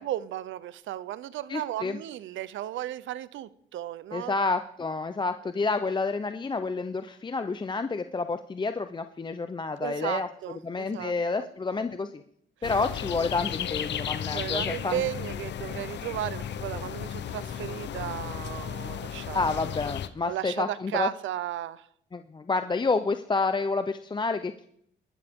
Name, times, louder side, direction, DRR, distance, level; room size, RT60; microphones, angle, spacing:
voice 1, 0.0-4.3 9.8-11.5 14.3-19.8 20.3-21.9, right 12 dB, 75° right, 0.7 m, -35 dB
voice 2, 1.5-2.0 4.1-10.3 10.6-12.2 12.6-15.0 19.3-21.1 22.1-24.7, left 3 dB, 25° left, 0.6 m, -29 dB
sound 1, 12.6-20.1, left 9 dB, 60° left, 0.8 m, -34 dB
21.5 x 12.0 x 3.7 m
cardioid pair, 90°, 20 cm